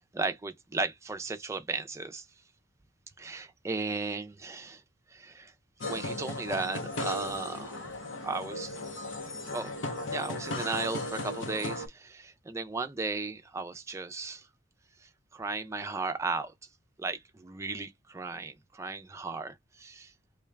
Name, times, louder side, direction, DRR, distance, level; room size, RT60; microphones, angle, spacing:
voice 1, 0.0-2.3 3.2-4.8 5.1-5.5 5.9-7.9 8.2-8.8 9.5-9.7 10.1-14.5 15.0-16.5 17.0-20.1, right 3 dB, 15° right, 0.4 m, -35 dB
sound 1, 5.8-11.9, left 2 dB, 80° left, 0.8 m, -36 dB
3.7 x 2.3 x 3.2 m
head